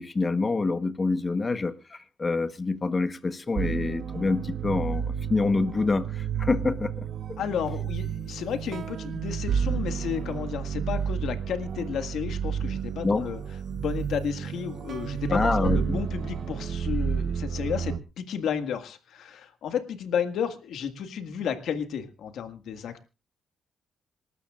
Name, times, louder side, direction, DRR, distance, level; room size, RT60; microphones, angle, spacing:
voice 1, 0.0-1.7 2.2-7.1 13.0-13.2 15.3-16.0, left 3 dB, 30° left, 1.1 m, -26 dB
sound 1, 3.6-18.0, right 7 dB, 65° right, 1.0 m, -31 dB
voice 2, 7.4-13.4 13.7-23.0, left 8 dB, 80° left, 1.8 m, -32 dB
26.5 x 13.0 x 2.5 m
cardioid pair, 105°, 0 cm